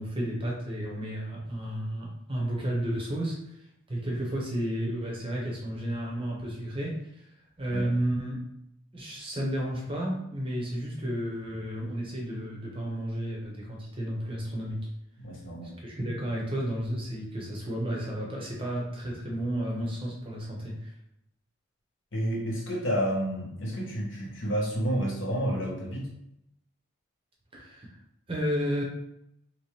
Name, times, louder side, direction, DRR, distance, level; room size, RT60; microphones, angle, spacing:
voice 1, 0.0-3.6 3.9-7.3 7.6-8.4 8.9-14.9 15.8-20.9 27.5-28.0 28.3-28.8, equal, 25° right, -2 dB, 0.7 m, -32 dB
voice 2, 15.2-15.7 22.1-26.1, equal, 65° left, -2 dB, 1.0 m, -30 dB
3.2 x 2.8 x 3.4 m, 0.78 s
head